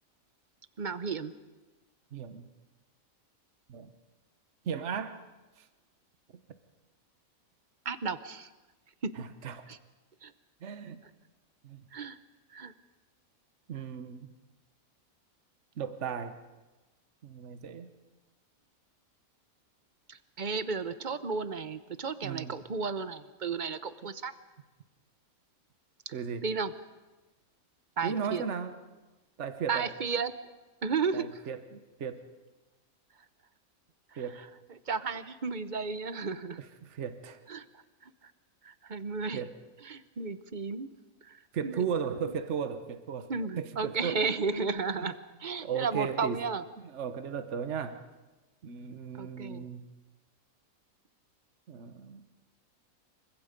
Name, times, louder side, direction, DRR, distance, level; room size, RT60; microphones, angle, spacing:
voice 1, 0.8-1.3 7.8-8.5 9.0-9.1 9.7-9.8 10.2-10.3 11.9-12.2 12.5-12.7 20.1-24.3 26.1-26.2 26.4-26.7 28.0-28.4 29.7-30.3 30.8-31.4 34.1-34.2 34.7-36.6 37.5-37.6 38.0-38.1 38.6-39.5 39.8-40.9 41.2-41.8 43.3-45.1 45.4-46.6 49.2-49.7, right 5 dB, 40° right, 12 dB, 1.0 m, -33 dB
voice 2, 2.1-2.5 3.7-3.9 4.6-5.2 5.6-5.7 9.2-9.6 10.6-11.0 11.6-11.8 13.7-14.3 15.8-16.3 17.2-17.9 22.2-22.5 26.1-26.4 28.0-28.8 29.4-29.9 31.1-32.3 34.2-34.4 36.8-37.4 39.3-39.5 41.5-43.3 43.6-44.2 45.0-45.1 45.6-46.4 46.9-48.0 48.6-49.8 51.7-52.2, right 7 dB, 55° right, 10 dB, 1.4 m, -36 dB
28.0 x 24.5 x 5.2 m, 1.1 s
omnidirectional pair, 1.5 m